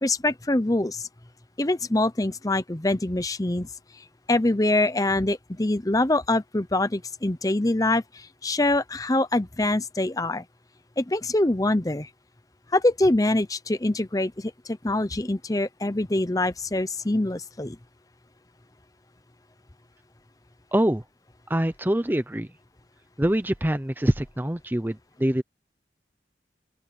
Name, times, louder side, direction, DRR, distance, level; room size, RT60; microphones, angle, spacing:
voice 1, 0.0-1.1 1.6-3.7 4.3-10.4 11.0-12.1 12.7-17.8, left 2 dB, 20° left, 0.8 m, -24 dB
voice 2, 20.7-21.0 21.5-22.5 23.2-25.4, right 1 dB, 10° right, 0.6 m, -24 dB
open air
head